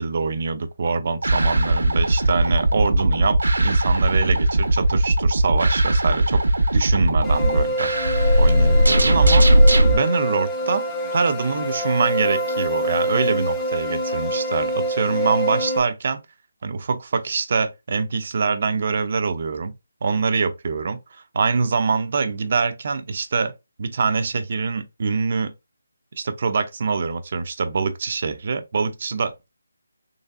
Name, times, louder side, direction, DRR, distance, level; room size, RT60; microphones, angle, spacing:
voice 1, 0.0-6.4 6.7-7.9 8.4-9.5 9.9-10.9 11.1-16.2 16.6-19.7 20.0-25.5 26.2-29.5, right 4 dB, 45° right, 0.6 m, -24 dB
sound 1, 1.2-9.9, right 1 dB, 85° right, 1.0 m, -18 dB
sound 2, 7.2-15.8, right 1 dB, 10° left, 0.7 m, -25 dB
4.0 x 3.1 x 2.5 m
figure-of-eight pair, 165°, 0 cm